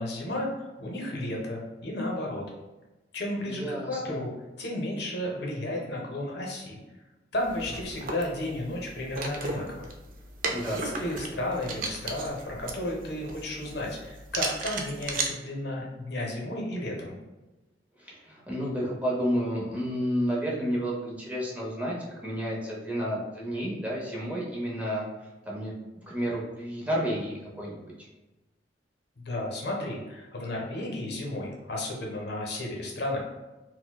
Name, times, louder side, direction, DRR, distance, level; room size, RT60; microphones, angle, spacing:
voice 1, 0.0-2.4 3.1-4.3 4.6-6.8 7.3-9.9 10.7-17.2 29.2-33.2, left 1 dB, 65° left, -1 dB, 0.7 m, -33 dB
voice 2, 3.4-4.2 10.5-10.8 18.0-22.0 22.2-25.1 25.5-25.7 26.1-27.8, equal, 10° right, -5 dB, 0.6 m, -31 dB
sound 1, 7.4-15.3, right 3 dB, 50° right, 0.4 m, -36 dB
4.2 x 2.1 x 2.2 m, 1.1 s
head